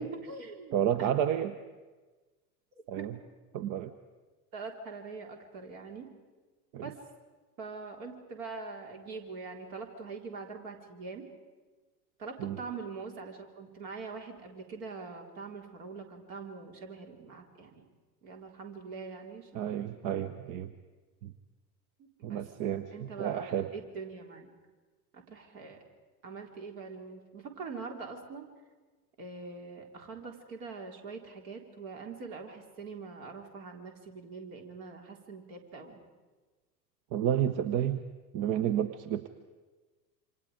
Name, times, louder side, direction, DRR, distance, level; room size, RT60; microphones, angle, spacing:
voice 1, 0.0-1.1 3.0-3.1 4.5-6.1 6.8-7.0 7.6-11.2 12.2-17.9 18.2-19.7 22.2-22.4 22.9-24.5 25.1-25.8 26.2-28.5 29.2-36.0, right 4 dB, 55° right, 2 dB, 3.8 m, -43 dB
voice 2, 0.7-1.5 2.9-3.1 3.5-3.9 6.7-6.8 12.4-12.6 19.5-20.7 21.2-21.3 22.2-23.7 37.1-38.0 38.3-39.3, right 10 dB, 40° right, 12 dB, 0.9 m, -30 dB
28.0 x 25.5 x 5.1 m, 1.3 s
figure-of-eight pair, 80°, 50 cm